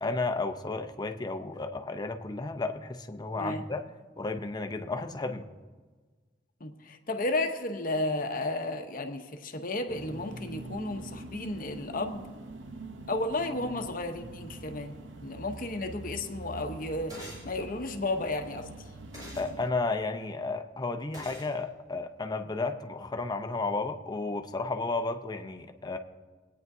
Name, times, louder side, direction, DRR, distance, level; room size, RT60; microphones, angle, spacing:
voice 1, 0.0-3.8 4.2-5.5 19.4-26.0, left 3 dB, 25° left, 6 dB, 0.7 m, -33 dB
voice 2, 6.6-12.3 13.1-14.9 15.2-17.2 17.4-18.7, left 2 dB, 50° left, 6 dB, 0.9 m, -33 dB
sound 1, 9.9-19.7, right 2 dB, 85° right, 0.9 m, -44 dB
sound 2, 17.1-17.5 19.1-19.5 21.1-21.5, equal, 20° right, 4.3 m, -44 dB
21.0 x 9.3 x 2.7 m, 1.4 s
head